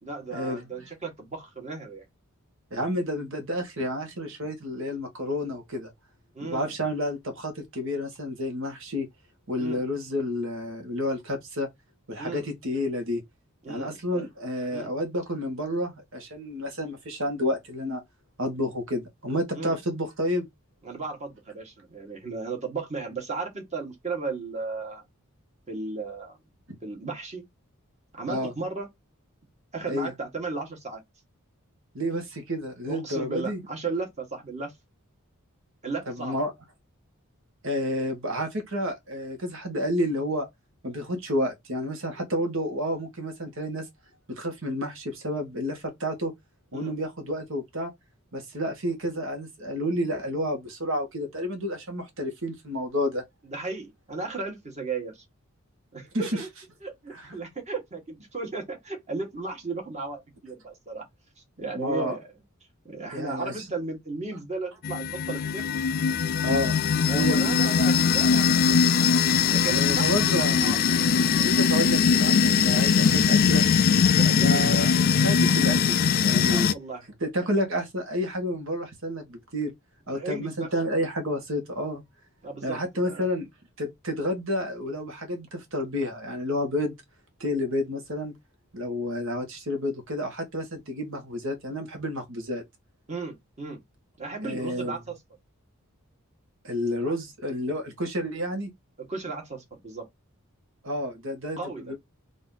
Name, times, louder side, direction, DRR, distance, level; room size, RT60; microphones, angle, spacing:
voice 1, 0.0-2.0 6.3-6.7 9.6-9.8 12.2-12.5 13.6-14.3 14.7-14.9 19.5-19.8 20.8-25.0 25.7-26.4 26.8-27.4 28.1-28.9 29.7-31.0 32.9-34.7 35.8-36.4 46.7-46.9 53.4-55.2 55.9-56.5 56.8-61.1 61.6-62.2 62.8-65.7 67.1-68.7 69.5-70.8 74.2-74.8 76.5-77.1 80.1-80.7 82.4-83.3 93.1-93.8 94.2-95.2 97.1-97.2 99.0-100.0 101.6-101.9, right 4 dB, 30° right, 1.7 m, -35 dB
voice 2, 2.7-5.9 6.5-9.1 9.5-11.7 12.1-13.2 13.7-18.0 18.4-20.5 28.3-28.5 29.9-30.1 31.9-33.6 36.1-36.5 37.6-40.5 40.8-43.9 44.3-46.3 46.7-47.9 48.3-53.2 56.1-56.3 61.7-62.2 63.1-63.5 66.4-66.8 67.1-67.6 69.7-70.8 71.4-73.6 74.2-76.7 77.2-79.7 80.1-82.0 82.6-83.5 83.8-86.9 87.4-88.3 88.7-92.6 94.4-95.0 96.6-98.7 100.8-102.0, left 1 dB, 65° right, 1.6 m, -30 dB
sound 1, 64.8-76.7, left 6 dB, 45° left, 0.3 m, -21 dB
4.0 x 2.7 x 3.9 m
head